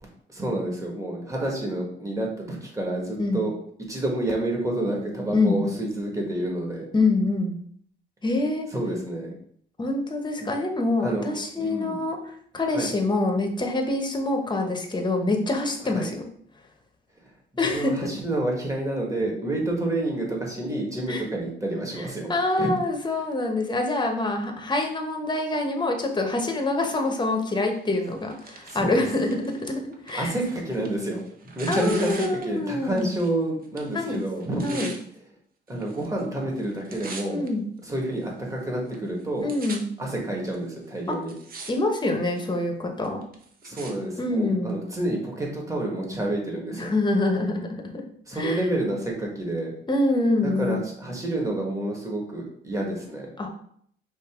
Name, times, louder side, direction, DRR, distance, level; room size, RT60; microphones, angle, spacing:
voice 1, 0.3-3.6 3.9-6.9 8.7-9.4 10.4-10.5 11.0-12.0 12.7-12.9 15.8-16.1 17.5-22.3 22.6-22.7 28.6-29.0 30.1-34.9 35.7-37.4 37.8-39.5 40.0-41.3 43.6-46.9 48.3-49.7 50.4-53.3, right 1 dB, 15° right, -1 dB, 1.5 m, -29 dB
voice 2, 6.9-7.6 8.2-8.7 9.8-12.2 12.5-16.2 17.6-17.9 21.1-21.2 22.3-30.3 31.7-33.1 33.9-34.2 34.6-34.9 37.3-37.6 39.4-39.8 41.1-41.2 41.7-43.2 44.2-44.8 46.8-48.0 48.3-48.6 49.9-50.8 53.4-53.5, left 2 dB, 20° left, 3 dB, 0.9 m, -25 dB
Tearing, 27.9-33.4 33.6-35.0 35.7-36.2 36.5-37.5 38.1-38.2 38.9-39.0 39.2-39.8 40.5-40.6 41.1-41.7 42.0-42.5 43.0-43.9 44.7-44.8, right 4 dB, 45° right, 0.9 m, -41 dB
5.2 x 2.7 x 3.6 m, 0.64 s
cardioid pair, 90°, 20 cm